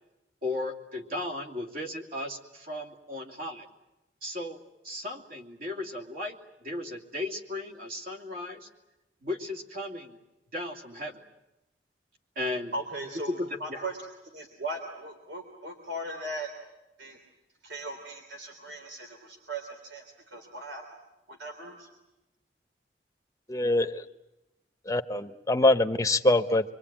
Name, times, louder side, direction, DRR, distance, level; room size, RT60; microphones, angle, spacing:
voice 1, 0.4-3.7 4.2-6.4 6.6-8.7 9.2-10.2 10.5-11.2 12.4-12.7 13.3-13.9, left 2 dB, 55° right, 3 dB, 2.7 m, -35 dB
voice 2, 12.7-14.0 14.3-16.5 17.0-17.2 17.6-21.0 21.3-21.9, right 1 dB, 80° right, 3 dB, 3.4 m, -38 dB
voice 3, 23.5-24.0 24.9-26.6, left 2 dB, 20° left, 8 dB, 0.9 m, -24 dB
26.0 x 23.0 x 8.8 m, 0.98 s
head